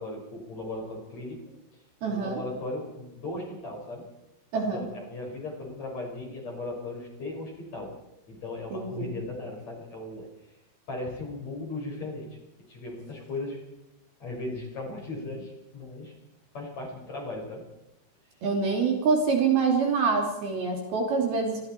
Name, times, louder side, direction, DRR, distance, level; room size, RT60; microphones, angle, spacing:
voice 1, 0.0-1.4 2.1-4.1 4.7-7.9 8.3-10.3 10.9-12.4 12.7-13.6 14.2-16.1 16.5-17.7, left 2 dB, 35° left, 0 dB, 6.5 m, -37 dB
voice 2, 2.0-2.4 4.5-4.8 8.7-9.1 18.4-21.7, right 5 dB, 55° right, 2 dB, 4.4 m, -26 dB
28.0 x 24.0 x 4.5 m, 0.90 s
omnidirectional pair, 5.7 m